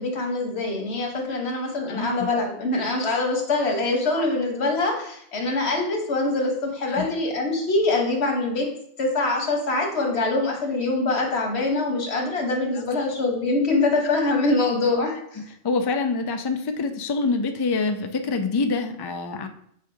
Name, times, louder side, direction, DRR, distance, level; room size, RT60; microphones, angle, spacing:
voice 1, 0.0-8.7 9.0-15.4, left 2 dB, 90° left, 1 dB, 1.5 m, -24 dB
voice 2, 1.9-2.3 4.2-4.3 6.8-7.1 12.7-12.8 15.6-19.5, left 4 dB, 40° left, 7 dB, 0.3 m, -26 dB
7.3 x 4.8 x 2.7 m, 0.69 s
omnidirectional pair, 1.1 m